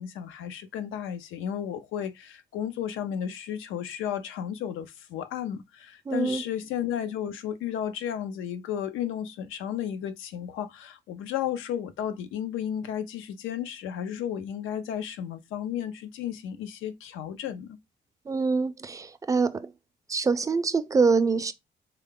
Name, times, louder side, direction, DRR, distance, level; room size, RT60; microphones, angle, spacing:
voice 1, 0.0-17.8, left 9 dB, 90° left, 0.6 m, -33 dB
voice 2, 6.1-6.4 18.3-19.7 20.1-21.5, right 4 dB, 15° right, 0.4 m, -25 dB
3.4 x 2.3 x 3.6 m
cardioid pair, 90°, 20 cm